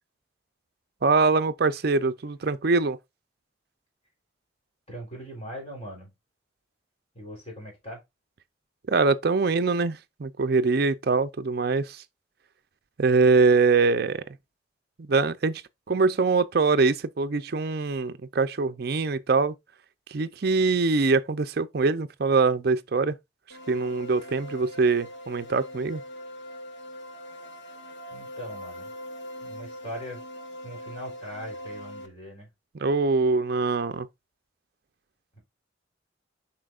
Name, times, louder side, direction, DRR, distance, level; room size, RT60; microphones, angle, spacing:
voice 1, 1.0-3.0 8.9-12.0 13.0-14.2 15.1-15.6 15.9-19.5 20.1-23.1 23.7-26.0 32.8-34.1, right 4 dB, 50° right, 0.5 m, -23 dB
voice 2, 4.9-6.1 7.1-8.0 28.1-28.9 29.4-30.2 30.6-32.5, equal, 30° left, 3.8 m, -40 dB
sound 1, 23.5-32.1, equal, 60° left, 1.0 m, -41 dB
7.8 x 5.6 x 2.4 m
head